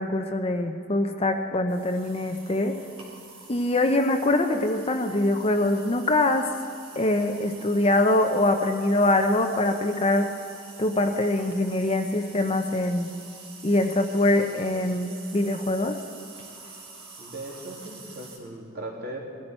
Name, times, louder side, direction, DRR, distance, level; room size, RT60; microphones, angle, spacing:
voice 1, 0.0-2.8 3.5-6.5 7.0-10.3 10.8-13.1 13.6-16.0, left 2 dB, 30° left, 5 dB, 0.7 m, -23 dB
aspirin tablet dissolves in water, 1.7-18.4, right 4 dB, 80° right, 3.6 m, -47 dB
voice 2, 17.2-19.2, right 1 dB, 50° right, -2 dB, 2.9 m, -38 dB
21.5 x 14.0 x 4.4 m, 2.7 s
head